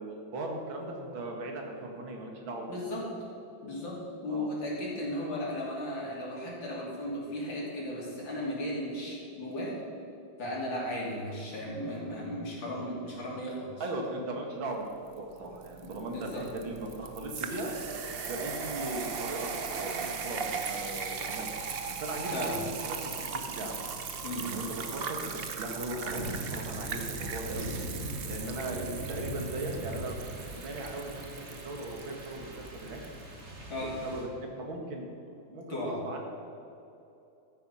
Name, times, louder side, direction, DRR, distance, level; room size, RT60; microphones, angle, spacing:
voice 1, 0.0-3.1 4.3-4.5 13.8-17.7 18.3-21.5 22.0-23.8 24.4-27.7 28.0-33.0 33.8-35.1 35.5-36.2, right 2 dB, 85° right, 1 dB, 2.6 m, -38 dB
voice 2, 2.7-3.0 3.6-3.9 4.2-9.7 10.4-13.7 15.8-16.4 22.3-22.5 24.2-24.5 28.7-28.9 33.7-33.9 35.7-35.9, left 1 dB, 75° left, -5 dB, 4.0 m, -36 dB
sound 1, 15.1-33.1, right 5 dB, 50° right, 0.7 m, -38 dB
sound 2, 26.1-34.2, equal, 35° right, 2.3 m, -41 dB
13.5 x 9.8 x 5.6 m, 2.8 s
omnidirectional pair, 2.1 m